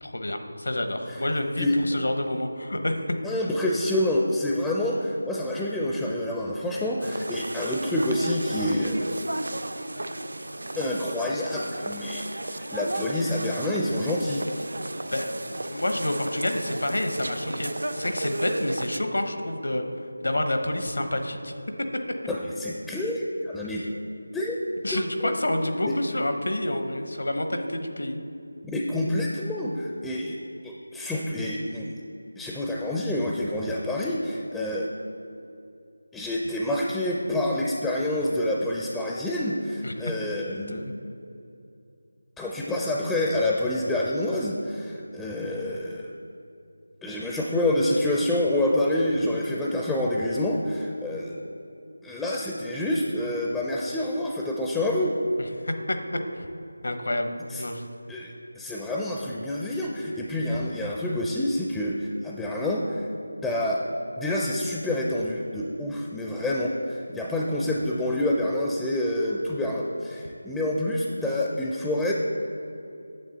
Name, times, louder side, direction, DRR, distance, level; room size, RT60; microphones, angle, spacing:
voice 1, 0.0-3.1 15.1-15.4 15.6-17.7 18.0-19.8 20.2-21.5 23.7-23.9 24.8-28.2 39.8-40.1 40.5-40.9 55.6-56.0 56.4-56.5 56.8-57.3 57.6-57.9, left 1 dB, 75° left, 6 dB, 1.0 m, -28 dB
voice 2, 3.2-9.1 10.8-14.4 22.3-23.8 24.3-24.6 24.9-25.3 28.7-30.4 30.6-31.9 32.4-34.9 36.1-40.8 42.4-46.1 47.0-51.3 52.0-55.1 57.5-57.6 58.1-63.1 63.4-63.8 64.2-72.1, left 1 dB, 5° left, -3 dB, 0.4 m, -27 dB
sound 1, 7.0-19.0, right 1 dB, 80° right, 0.6 m, -34 dB
9.1 x 7.1 x 4.1 m, 2.7 s
figure-of-eight pair, 170°, 0 cm